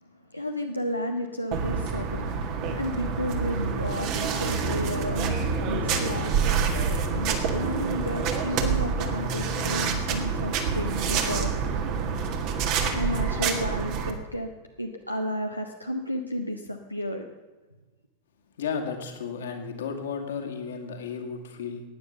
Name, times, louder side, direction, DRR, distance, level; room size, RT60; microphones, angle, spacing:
voice 1, 0.3-2.5 2.7-6.3 7.1-11.6 12.9-14.5 14.8-17.2, left 1 dB, 90° left, 2 dB, 0.9 m, -32 dB
sound 1, 1.5-14.1, right 5 dB, 45° right, 1.8 m, -27 dB
voice 2, 18.5-21.8, left 6 dB, 60° left, 5 dB, 2.2 m, -33 dB
16.0 x 9.9 x 6.8 m, 1.2 s
figure-of-eight pair, 90°, 0 cm